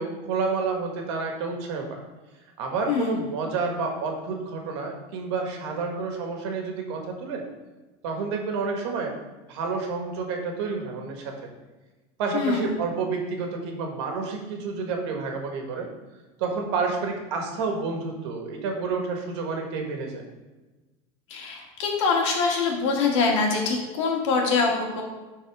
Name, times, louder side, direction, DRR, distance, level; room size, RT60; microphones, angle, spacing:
voice 1, 0.0-2.0 2.6-7.4 8.0-9.1 9.5-11.5 12.2-15.9 16.4-20.2, right 4 dB, 70° right, 2 dB, 1.6 m, -29 dB
voice 2, 2.9-3.2 12.3-12.7 21.3-25.0, left 4 dB, 80° left, 0 dB, 1.9 m, -24 dB
11.0 x 4.1 x 3.5 m, 1.2 s
supercardioid pair, 170°, 15 cm